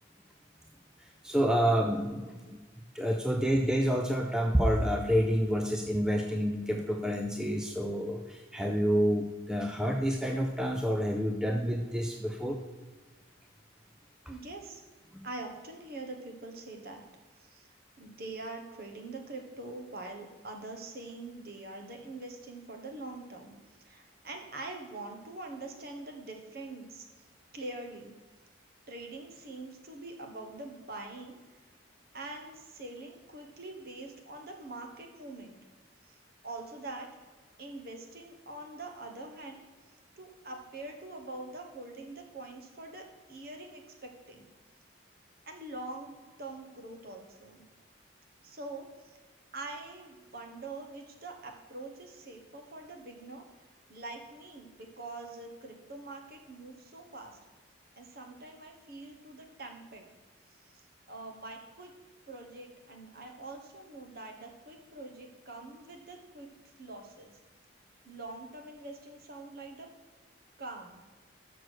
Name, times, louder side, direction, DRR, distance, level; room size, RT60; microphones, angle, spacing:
voice 1, 1.0-2.6 2.9-12.6 15.1-15.2, equal, 5° right, 3 dB, 0.4 m, -28 dB
voice 2, 14.3-14.8 15.2-17.0 17.4-23.6 23.8-27.1 27.5-28.1 28.9-31.7 32.1-35.6 36.0-36.1 36.4-37.1 37.6-39.6 40.2-44.5 45.5-47.7 48.4-49.2 49.5-57.4 58.0-60.1 60.5-61.9 62.3-66.5 66.8-67.4 68.0-69.9 70.6-71.0, right 2 dB, 50° right, 3 dB, 1.1 m, -44 dB
6.3 x 6.1 x 6.2 m, 1.3 s
head